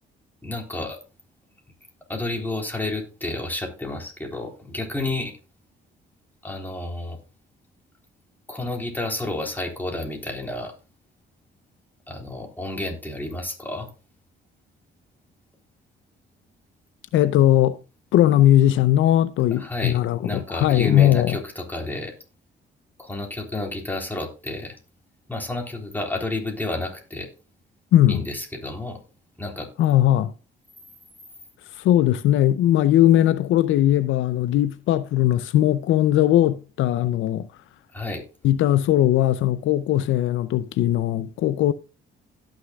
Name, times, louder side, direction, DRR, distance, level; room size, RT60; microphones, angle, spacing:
voice 1, 0.4-1.0 2.1-5.4 6.4-7.2 8.5-10.7 12.1-13.9 19.6-22.1 23.0-24.8 25.3-27.3 28.1-29.0 29.4-29.7 37.9-38.2, left 2 dB, 10° left, 3.5 m, -30 dB
voice 2, 17.1-17.8 18.1-21.4 27.9-28.2 29.8-30.3 31.7-37.5 38.4-41.7, left 12 dB, 80° left, 0.5 m, -19 dB
17.0 x 6.6 x 2.4 m
cardioid pair, 90°, 20 cm